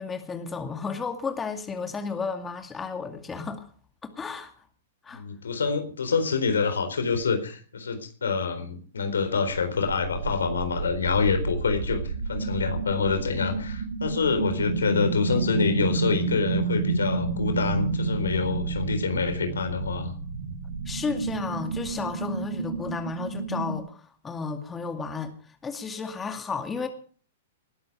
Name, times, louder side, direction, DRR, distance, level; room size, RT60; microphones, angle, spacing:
voice 1, 0.0-3.7 4.0-4.5 5.0-5.2 20.9-26.9, left 4 dB, 15° left, 2.3 m, -33 dB
voice 2, 5.1-20.1, left 5 dB, 80° left, 4.1 m, -26 dB
sound 1, 9.5-23.8, right 4 dB, 80° right, 2.7 m, -30 dB
20.0 x 12.5 x 4.8 m
hypercardioid pair, 110°, 0 cm